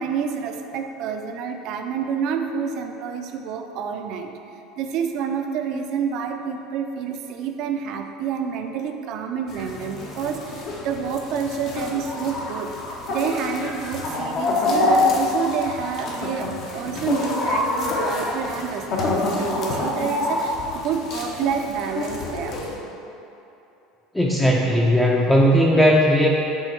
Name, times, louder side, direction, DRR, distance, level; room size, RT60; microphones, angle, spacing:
voice 1, 0.0-4.3 4.8-12.7 13.1-22.7, right 6 dB, 60° right, 5 dB, 0.3 m, -28 dB
sound 1, 9.5-22.8, left 2 dB, 50° left, 0.7 m, -26 dB
voice 2, 24.1-26.3, equal, 5° left, -2 dB, 0.4 m, -17 dB
5.4 x 3.0 x 3.2 m, 2.9 s
hypercardioid pair, 75°, 0 cm